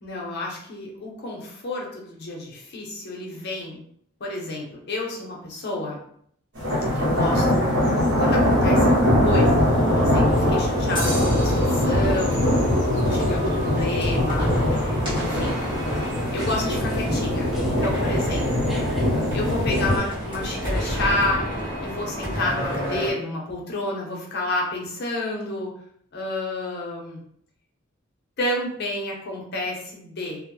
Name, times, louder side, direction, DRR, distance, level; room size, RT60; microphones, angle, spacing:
voice 1, 0.0-3.8 4.2-6.0 6.9-12.6 13.1-15.6 16.3-18.7 19.3-21.5 21.8-25.7 26.1-27.2 28.4-30.4, left 2 dB, 55° left, -2 dB, 0.6 m, -30 dB
sound 1, 6.6-20.0, left 1 dB, 60° right, 1.0 m, -22 dB
sound 2, 8.2-23.1, equal, 25° right, 1.1 m, -32 dB
sound 3, 15.2-21.3, equal, ahead, 0.3 m, -38 dB
2.1 x 2.0 x 2.9 m, 0.65 s
head